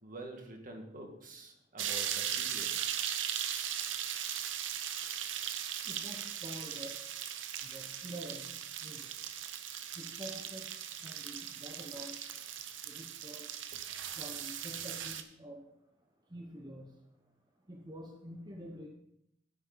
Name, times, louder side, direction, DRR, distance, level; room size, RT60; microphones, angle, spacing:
voice 1, 0.0-2.8, right 1 dB, 45° right, 3 dB, 1.7 m, -47 dB
sound 1, 1.8-15.2, right 9 dB, 80° right, 0.8 m, -38 dB
voice 2, 5.9-6.9 7.6-8.5 8.8-9.1 10.0-10.7 11.0-12.1 12.9-13.5 14.2-15.6 16.3-16.9 17.7-18.9, equal, 20° right, 1 dB, 0.9 m, -47 dB
9.4 x 9.2 x 4.0 m, 0.77 s
head